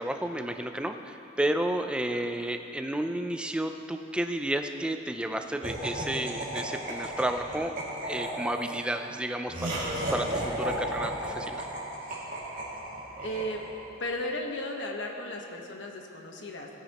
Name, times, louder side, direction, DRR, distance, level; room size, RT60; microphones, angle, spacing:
voice 1, 0.0-7.7 8.0-11.7, right 1 dB, 5° right, 6 dB, 0.4 m, -32 dB
Laughter, 5.6-14.0, right 1 dB, 45° right, 2.3 m, -35 dB
voice 2, 13.2-13.6 14.0-16.7, left 1 dB, 70° left, 1 dB, 1.2 m, -35 dB
17.0 x 9.9 x 3.0 m, 2.9 s
head